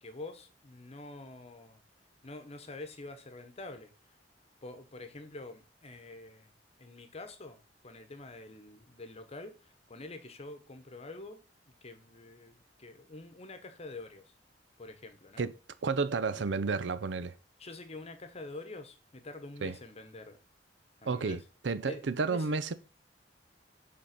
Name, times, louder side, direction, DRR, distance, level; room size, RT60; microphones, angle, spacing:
voice 1, 0.0-1.8 2.2-3.9 4.6-6.5 6.8-11.4 11.8-14.3 14.8-15.5 16.3-16.5 17.6-20.4 21.0-21.4 21.8-22.5, left 2 dB, 35° left, 1.0 m, -46 dB
voice 2, 15.8-17.3 19.6-19.8 21.1-22.7, right 4 dB, 80° right, 0.6 m, -31 dB
6.4 x 3.8 x 5.9 m
head